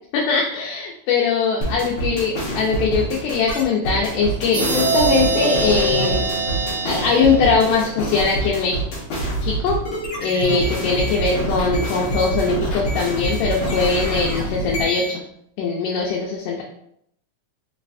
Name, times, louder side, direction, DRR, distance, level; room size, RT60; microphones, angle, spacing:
voice 1, 0.1-6.2 6.8-8.8 9.4-9.8 10.2-15.2 15.6-16.6, left 4 dB, 85° left, -1 dB, 2.2 m, -21 dB
sound 1, 1.6-15.1, right 1 dB, 60° left, 1.6 m, -26 dB
sound 2, 4.5-8.1, right 3 dB, 80° right, 1.4 m, -23 dB
4.6 x 3.1 x 2.5 m, 0.72 s
omnidirectional pair, 3.7 m